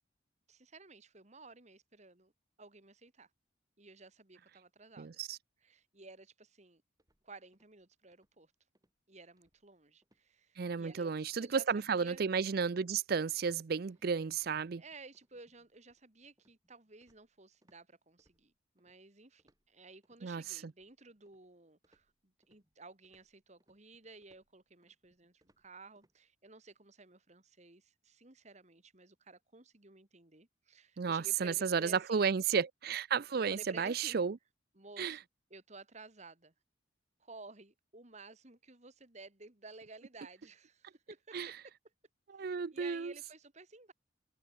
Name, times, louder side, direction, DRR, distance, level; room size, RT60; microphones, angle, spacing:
voice 1, 0.5-2.3 2.6-3.3 3.8-5.1 5.6-6.8 7.2-8.5 9.1-11.1 11.4-12.2 14.8-32.3 33.5-34.2 34.7-35.2 35.5-36.5 37.2-41.4 42.4-43.9, right 3 dB, 40° right, 2.2 m, -55 dB
voice 2, 5.0-5.4 10.6-14.8 20.2-20.7 31.0-34.4 35.0-35.2 41.3-41.5 42.3-43.1, right 6 dB, 55° right, 0.5 m, -33 dB
sound 1, 7.0-7.8 8.1-8.4 8.7-9.0 9.4-9.8 10.0-10.3 10.7-11.0 11.4-12.3 12.6-12.9 13.2-17.8 18.2-19.0 19.4-20.2 20.7-21.5 21.8-26.1, right 1 dB, 20° right, 7.8 m, -75 dB
head